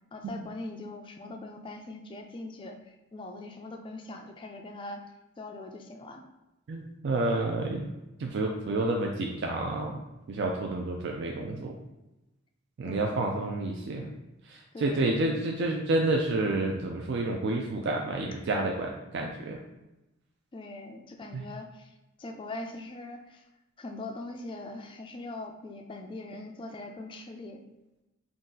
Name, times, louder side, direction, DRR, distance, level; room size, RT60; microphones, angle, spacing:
voice 1, 0.1-5.0 5.4-6.2 12.8-13.1 14.7-15.1 20.5-23.4 23.8-27.6, left 2 dB, 25° left, 3 dB, 0.3 m, -41 dB
voice 2, 6.7-7.9 8.2-10.0 10.3-11.8 12.8-14.1 14.5-19.6 21.3-21.4, right 2 dB, 55° right, 1 dB, 0.4 m, -29 dB
3.9 x 2.3 x 3.8 m, 0.98 s
head